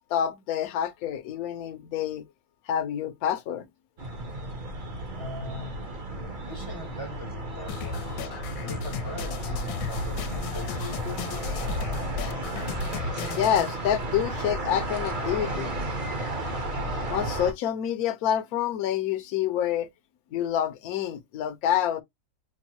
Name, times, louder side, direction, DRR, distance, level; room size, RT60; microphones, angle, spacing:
voice 1, 0.1-2.2 2.7-3.7 13.4-15.7 17.1-19.9 20.3-22.0, left 10 dB, 60° left, 1.0 m, -27 dB
sound 1, 4.0-17.5, right 1 dB, 40° right, 0.7 m, -33 dB
voice 2, 5.1-5.8 6.2-8.1 8.6-11.0, left 1 dB, 30° left, 0.6 m, -40 dB
sound 2, 7.7-13.7, left 6 dB, 80° left, 1.3 m, -36 dB
5.4 x 2.0 x 2.9 m
omnidirectional pair, 2.1 m